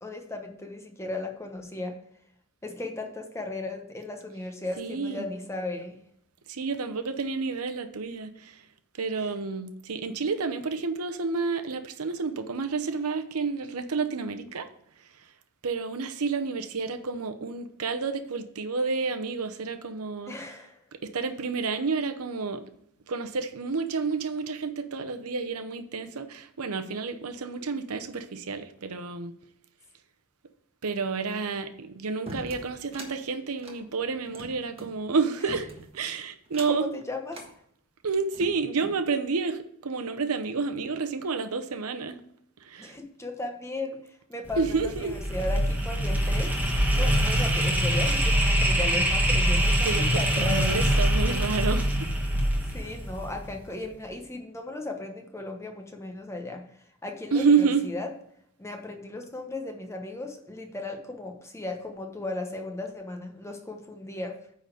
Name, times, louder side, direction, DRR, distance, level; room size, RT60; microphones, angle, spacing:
voice 1, 0.0-2.0 2.6-6.0 9.2-9.3 20.3-20.8 36.6-37.4 42.8-46.5 46.9-50.8 52.7-56.6 57.0-58.1 58.6-64.4, left 2 dB, 15° left, 4 dB, 1.1 m, -36 dB
voice 2, 4.8-5.3 6.5-8.6 9.0-14.7 15.6-20.3 21.0-22.6 23.1-29.3 30.8-35.7 35.9-36.9 38.0-42.2 42.6-42.9 44.6-45.2 49.7-52.1 57.3-57.8, right 4 dB, 85° right, 8 dB, 0.8 m, -29 dB
sound 1, 32.3-33.1 33.6-34.9 35.5-36.0 36.5-36.9 37.3-37.5 38.1-39.0, right 1 dB, 25° right, 1.4 m, -42 dB
sound 2, 44.5-53.6, equal, 10° right, 1.4 m, -24 dB
9.2 x 4.1 x 6.5 m, 0.71 s
head